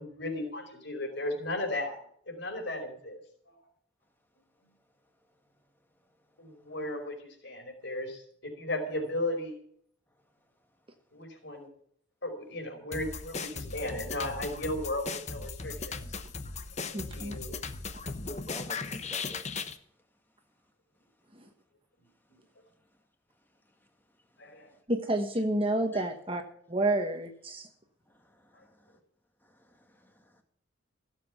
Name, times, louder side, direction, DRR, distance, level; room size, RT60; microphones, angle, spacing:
voice 1, 0.0-3.2 6.4-9.6 11.1-11.7 12.2-16.1 16.7-17.6 18.3-18.4 24.4-24.7 28.5-28.6, left 1 dB, 55° left, 3 dB, 5.0 m, -36 dB
sound 1, 12.9-19.8, left 4 dB, 35° left, 0.9 m, -38 dB
voice 2, 16.9-17.4 24.9-26.4 26.7-27.7, right 1 dB, 25° right, 5 dB, 1.3 m, -29 dB
voice 3, 18.5-19.5 25.9-26.0 28.1-28.9 29.4-30.4, equal, 10° left, 4 dB, 2.0 m, -50 dB
16.5 x 7.7 x 7.2 m, 0.64 s
head